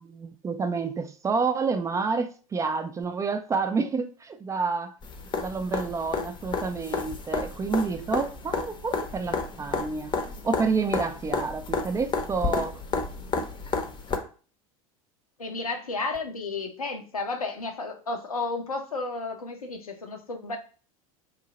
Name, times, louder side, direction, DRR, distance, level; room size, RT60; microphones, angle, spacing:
voice 1, 0.0-4.9 5.3-10.2 10.4-12.8, right 4 dB, 15° right, 0.4 m, -29 dB
sound 1, 5.0-14.2 16.2-16.3, left 4 dB, 25° left, 0.7 m, -31 dB
voice 2, 15.4-20.6, left 3 dB, 85° left, 0.7 m, -32 dB
3.8 x 2.7 x 2.8 m
figure-of-eight pair, 80°, 18 cm